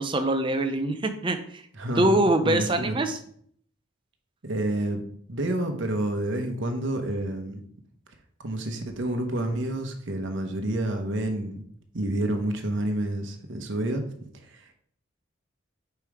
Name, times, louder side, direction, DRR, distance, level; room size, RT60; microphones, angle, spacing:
voice 1, 0.0-1.6 2.0-3.2, right 1 dB, 25° right, 8 dB, 0.6 m, -24 dB
voice 2, 1.8-2.1 2.4-3.0 4.4-5.0 5.3-7.6 8.4-11.6 11.9-14.0 14.4-14.7, right 1 dB, 70° right, 5 dB, 0.9 m, -29 dB
5.3 x 4.5 x 4.8 m, 0.63 s
head